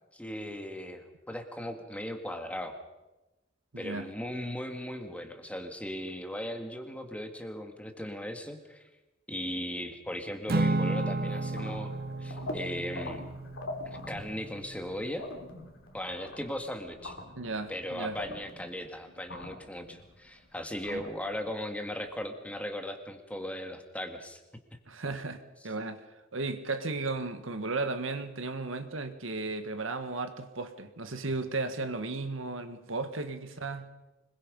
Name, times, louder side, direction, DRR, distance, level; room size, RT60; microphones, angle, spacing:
voice 1, 0.1-2.7 3.8-8.8 9.3-13.2 13.9-15.2 15.9-17.2 17.7-24.4, left 1 dB, 5° left, 2.1 m, -38 dB
voice 2, 3.7-4.1 17.4-18.2 20.9-21.0 24.9-26.0 26.3-33.9, right 3 dB, 85° right, 1.8 m, -35 dB
Acoustic guitar / Strum, 10.5-14.9, right 2 dB, 50° right, 1.2 m, -33 dB
sound 1, 11.0-22.1, left 2 dB, 75° left, 3.5 m, -44 dB
25.5 x 22.0 x 5.5 m
head